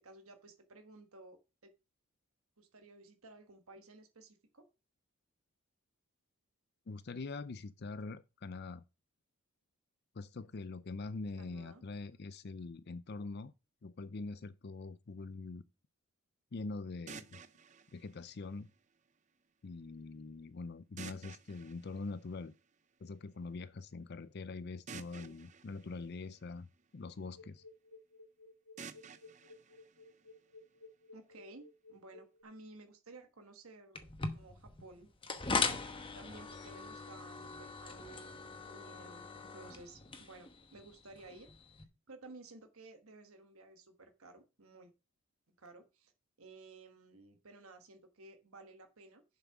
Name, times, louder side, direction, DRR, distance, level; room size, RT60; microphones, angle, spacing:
voice 1, 0.0-1.7 2.6-4.7 11.4-11.8 25.2-25.4 31.1-35.1 36.1-38.3 38.6-41.5 42.1-44.9 45.6-46.1 46.4-49.2, right 2 dB, 70° right, 1.3 m, -55 dB
voice 2, 6.9-8.8 10.1-13.5 13.8-15.6 16.5-17.4 17.9-18.7 19.6-22.5 23.0-27.6, left 3 dB, 45° left, 0.5 m, -44 dB
sound 1, 17.1-19.1 21.0-22.9 24.9-27.1 28.8-30.8, right 6 dB, 30° right, 0.5 m, -53 dB
sound 2, 27.4-32.4, left 3 dB, 80° left, 1.6 m, -56 dB
sound 3, 33.9-41.8, left 4 dB, 25° left, 1.0 m, -40 dB
7.3 x 5.8 x 6.0 m
head